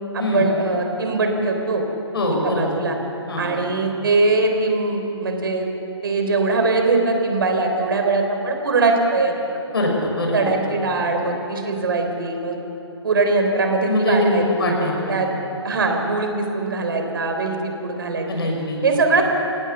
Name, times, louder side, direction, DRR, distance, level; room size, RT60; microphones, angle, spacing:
voice 1, 0.1-1.8 2.4-2.9 3.4-5.7 6.0-9.3 9.7-9.8 10.3-12.6 13.0-15.3 15.6-18.3 18.8-19.2, right 3 dB, 50° right, 4 dB, 3.8 m, -21 dB
voice 2, 2.1-2.7 3.3-3.5 9.7-10.5 13.9-15.2 18.3-18.8, left 1 dB, 60° left, 1 dB, 6.3 m, -22 dB
27.5 x 18.0 x 7.2 m, 3.0 s
figure-of-eight pair, 135°, 15 cm